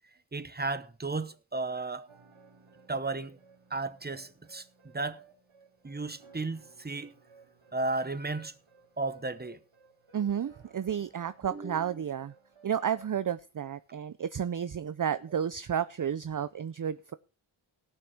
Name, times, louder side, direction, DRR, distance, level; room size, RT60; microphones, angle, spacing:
voice 1, 0.3-2.1 2.9-3.4 3.7-4.7 4.9-5.2 5.8-7.1 7.7-8.5 9.0-9.6 11.5-12.0, right 3 dB, 20° right, 0.9 m, -34 dB
sound 1, 2.1-13.1, right 4 dB, 70° right, 2.4 m, -60 dB
voice 2, 10.1-12.3 12.6-17.1, right 8 dB, 40° right, 0.5 m, -32 dB
17.5 x 6.1 x 4.4 m
wide cardioid pair, 60°, 50 cm